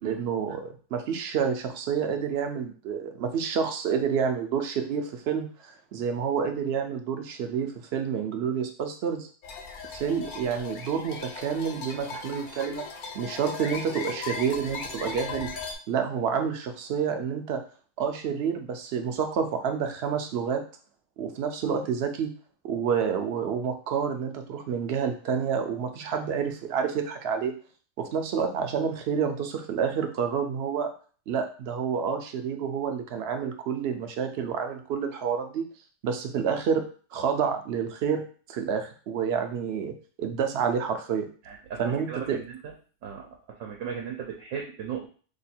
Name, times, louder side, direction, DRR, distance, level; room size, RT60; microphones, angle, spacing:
voice 1, 0.0-9.3 9.9-12.8 13.1-15.5 15.9-17.6 18.0-20.6 21.2-22.3 22.6-27.5 28.0-30.9 31.3-35.7 36.0-36.9 37.1-41.3 41.8-42.4, right 7 dB, 65° right, 5 dB, 0.7 m, -29 dB
sound 1, 9.4-15.7, left 4 dB, 60° left, 0.5 m, -38 dB
voice 2, 41.4-42.7 43.0-45.1, right 7 dB, 90° right, 1 dB, 1.0 m, -37 dB
2.8 x 2.3 x 4.2 m, 0.41 s
omnidirectional pair, 1.3 m